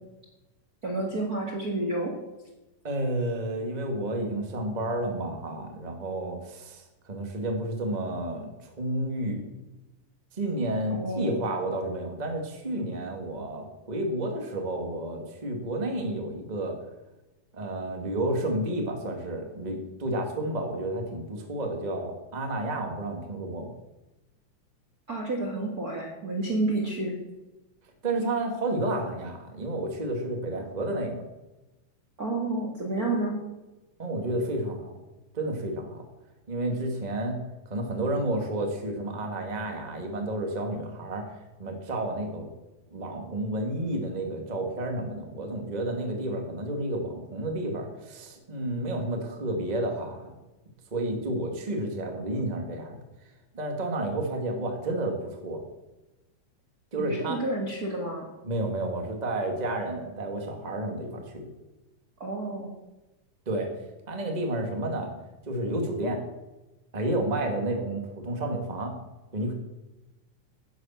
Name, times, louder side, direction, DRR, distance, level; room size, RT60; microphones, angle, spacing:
voice 1, 0.8-2.2 10.9-11.4 25.1-27.1 32.2-33.4 57.0-58.3 62.2-62.7, right 2 dB, 35° right, 0 dB, 1.9 m, -30 dB
voice 2, 2.8-9.4 10.3-16.7 17.5-23.7 28.0-31.2 34.0-34.9 35.3-36.0 36.5-37.4 37.7-41.3 41.6-42.5 42.9-50.3 50.9-53.0 53.5-55.6 56.9-57.4 58.4-61.5 63.4-63.7 64.1-65.1 65.4-66.2 66.9-68.9 69.3-69.5, right 1 dB, 15° right, 3 dB, 1.7 m, -31 dB
10.5 x 10.0 x 7.4 m, 1.0 s
omnidirectional pair, 3.6 m